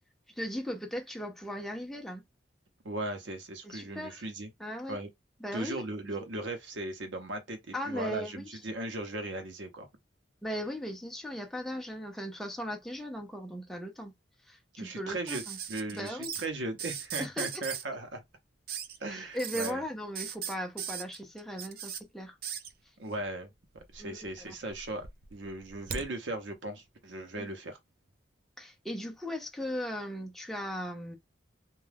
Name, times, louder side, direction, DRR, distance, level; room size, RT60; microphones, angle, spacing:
voice 1, 0.4-2.2 3.6-4.2 4.6-5.0 5.4-5.8 7.7-8.6 10.4-14.1 14.5-15.6 15.9-16.3 17.2-17.6 19.1-22.4 24.0-24.5 27.3-27.5 28.6-31.2, equal, ahead, 0.5 m, -38 dB
voice 2, 2.8-4.5 4.9-5.1 5.5-9.9 14.8-15.4 15.7-18.2 19.0-19.8 23.0-23.5 23.7-27.8, right 2 dB, 80° right, 0.7 m, -37 dB
sound 1, 15.3-16.5 16.8-17.8 18.7-19.0 19.4-19.7 20.2-22.0 22.4-22.7 23.7-24.3 24.7-26.1 27.4-27.5, right 8 dB, 55° right, 0.4 m, -38 dB
2.3 x 2.2 x 3.3 m
head